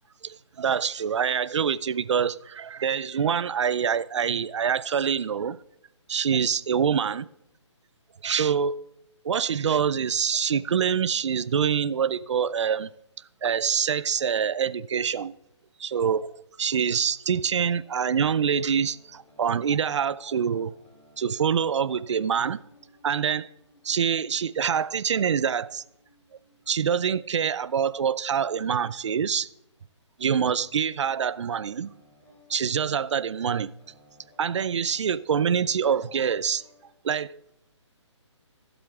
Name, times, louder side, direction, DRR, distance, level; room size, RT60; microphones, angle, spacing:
voice 1, 0.2-5.6 6.1-7.3 8.2-8.9 9.2-12.9 13.4-15.3 15.8-16.3 16.6-20.8 21.2-22.6 23.0-23.5 23.8-25.8 26.7-29.5 30.2-31.9 32.5-33.7 34.4-36.6 37.0-37.5, right 7 dB, 70° right, 0.4 m, -25 dB
sound 1, 17.7-29.6 30.7-36.9, left 1 dB, 10° left, 3.0 m, -60 dB
23.0 x 7.9 x 2.4 m
hypercardioid pair, 155°, 16 cm